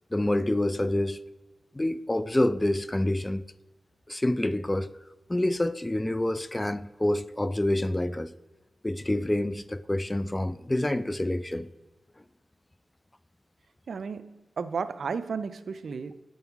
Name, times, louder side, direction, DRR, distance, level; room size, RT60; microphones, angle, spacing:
voice 1, 0.1-1.2 1.7-3.4 4.1-4.9 5.3-8.3 8.8-11.7, left 1 dB, 20° left, 0.4 m, -27 dB
voice 2, 13.9-16.2, right 5 dB, 75° right, 0.4 m, -33 dB
9.6 x 5.4 x 4.6 m
cardioid pair, 50°, 0 cm